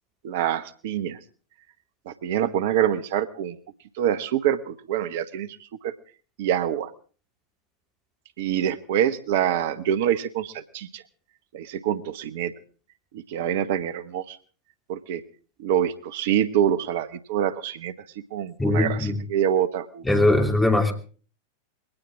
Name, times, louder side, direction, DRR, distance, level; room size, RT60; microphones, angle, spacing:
voice 1, 0.2-1.2 2.1-3.6 4.0-5.9 6.4-6.9 8.4-11.0 11.5-12.5 13.1-14.4 14.9-15.2 15.6-20.0, right 10 dB, 55° right, 14 dB, 1.0 m, -26 dB
voice 2, 18.6-19.1 20.1-20.9, left 2 dB, 10° left, 4 dB, 2.7 m, -20 dB
21.5 x 18.0 x 3.7 m, 0.40 s
figure-of-eight pair, 90°, 0 cm